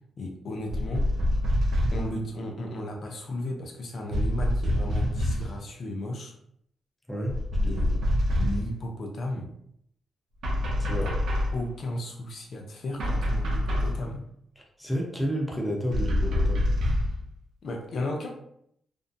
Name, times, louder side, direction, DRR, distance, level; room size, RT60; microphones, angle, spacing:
voice 1, 0.2-1.1 1.9-6.3 7.6-7.9 8.4-9.5 11.0-11.1 11.5-14.2 17.6-18.4, left 1 dB, 55° left, 2 dB, 0.5 m, -34 dB
sound 1, 0.7-2.2 4.1-5.6 7.3-8.8 10.4-11.6 13.0-14.0 15.9-17.2, left 1 dB, 80° right, 0.6 m, -26 dB
voice 2, 7.6-8.0 10.8-11.2 14.8-16.7, equal, 5° left, -1 dB, 0.7 m, -31 dB
2.6 x 2.1 x 2.5 m, 0.73 s
cardioid pair, 95°, 0 cm